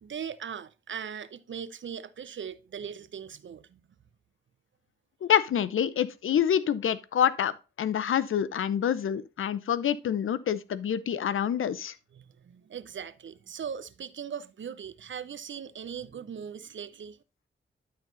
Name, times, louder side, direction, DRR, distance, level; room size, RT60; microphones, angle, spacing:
voice 1, 0.0-3.8 12.1-17.2, right 7 dB, 65° right, 0.7 m, -39 dB
voice 2, 5.2-7.5 7.8-11.9, left 9 dB, 80° left, 0.7 m, -27 dB
12.0 x 4.1 x 3.9 m
cardioid pair, 50°, 21 cm